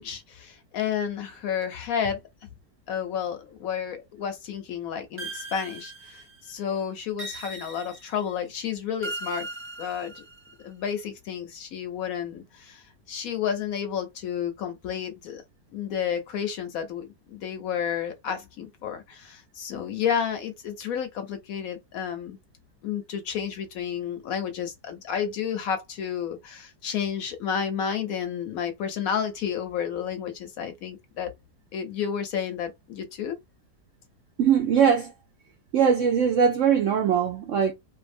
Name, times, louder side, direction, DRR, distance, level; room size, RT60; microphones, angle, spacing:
voice 1, 0.0-2.2 2.9-9.5 9.8-10.2 10.6-15.4 15.7-22.4 22.8-31.3 31.7-33.4, left 8 dB, 70° left, 0.9 m, -31 dB
sound 1, 5.2-6.5 7.2-8.3 9.0-10.5, right 2 dB, 10° right, 0.6 m, -38 dB
voice 2, 34.4-35.1 35.7-37.7, right 7 dB, 75° right, 0.7 m, -21 dB
2.7 x 2.3 x 2.5 m
omnidirectional pair, 1.8 m